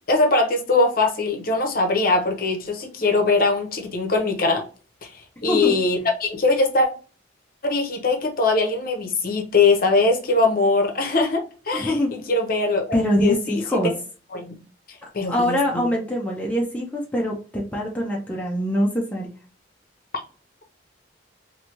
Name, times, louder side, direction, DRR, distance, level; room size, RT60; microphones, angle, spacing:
voice 1, 0.1-4.6 5.0-6.9 7.6-12.9 13.2-13.8 14.3-14.5 15.1-15.9, left 3 dB, 50° left, 0.8 m, -21 dB
voice 2, 5.5-5.8 11.7-12.1 12.9-13.9 15.3-19.3, equal, 10° left, 0.6 m, -23 dB
3.2 x 2.7 x 2.8 m
head